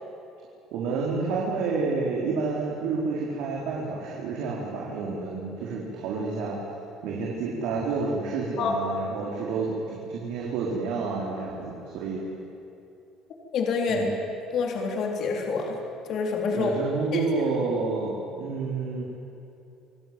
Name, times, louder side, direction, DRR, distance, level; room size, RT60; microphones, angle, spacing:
voice 1, 0.7-6.8 7.0-12.2 13.9-14.1 16.5-19.0, right 4 dB, 75° right, -3 dB, 4.5 m, -29 dB
voice 2, 13.5-14.1 14.5-15.7 16.1-16.7 17.1-17.2, left 5 dB, 55° left, 1 dB, 3.8 m, -27 dB
27.0 x 17.5 x 9.4 m, 2.8 s
cardioid pair, 130°, 0 cm